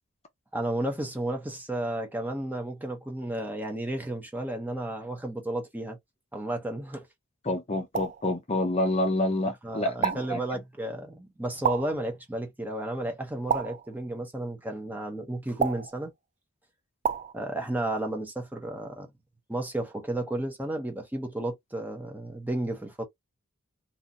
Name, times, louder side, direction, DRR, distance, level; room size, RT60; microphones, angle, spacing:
voice 1, 0.5-6.0 6.3-7.1 9.6-16.1 17.3-19.1 19.5-23.0, right 1 dB, 10° right, 0.7 m, -32 dB
voice 2, 7.5-10.4, left 1 dB, 30° left, 0.6 m, -28 dB
sound 1, 7.9-8.3 10.0-10.4 11.6-12.0 13.5-13.9 15.6-16.0 17.0-17.3, right 6 dB, 35° right, 0.3 m, -29 dB
3.9 x 2.1 x 2.7 m
head